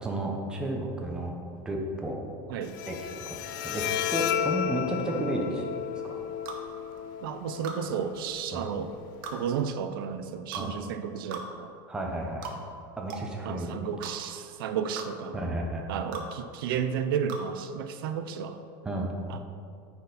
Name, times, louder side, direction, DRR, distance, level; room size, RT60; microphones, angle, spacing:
voice 1, 0.0-1.4 1.6-2.2 2.9-5.7 6.0-6.2 8.5-8.6 10.6-10.7 11.9-12.6 13.0-13.7 15.3-15.8 18.8-19.1, right 1 dB, 5° right, 0 dB, 0.6 m, -32 dB
Bowed string instrument, 2.6-9.6, left 10 dB, 65° left, 0.4 m, -34 dB
sound 1, 6.5-6.6 7.6-7.8 9.2-9.4 10.5-10.7 11.3-11.5 12.4-12.6 13.1-13.3 14.0-14.1 15.0-15.1 16.1-16.3 17.3-17.5, right 4 dB, 65° right, 1.0 m, -38 dB
voice 2, 7.2-8.9 9.3-11.8 13.4-15.4 15.9-18.6 19.3-19.4, right 7 dB, 85° right, 9 dB, 0.5 m, -32 dB
9.4 x 4.3 x 3.9 m, 2.4 s
supercardioid pair, 165°, 11 cm